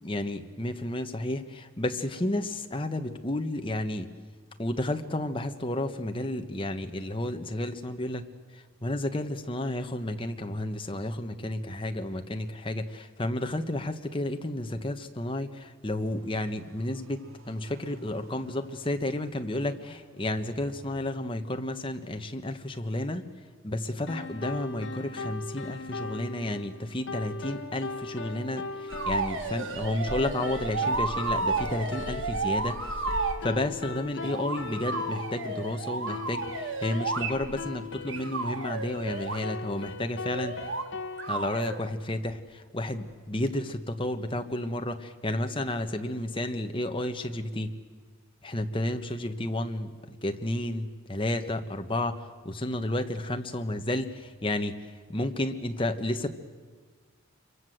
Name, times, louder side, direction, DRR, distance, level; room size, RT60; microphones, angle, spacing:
voice 1, 0.0-4.1 4.6-8.2 8.5-23.2 23.6-32.8 33.1-40.6 41.3-47.7 48.4-54.8 55.1-56.3, left 1 dB, 25° left, 6 dB, 1.3 m, -32 dB
sound 1, 16.0-21.0, right 1 dB, 75° right, 1.9 m, -52 dB
sound 2, 24.1-41.3, left 3 dB, 60° left, 1.5 m, -40 dB
sound 3, 28.9-33.4 34.2-37.7 38.1-39.4 40.2-40.9 41.2-41.8 43.5-43.6, right 3 dB, 60° right, 1.8 m, -32 dB
26.5 x 23.5 x 7.9 m, 1.5 s
head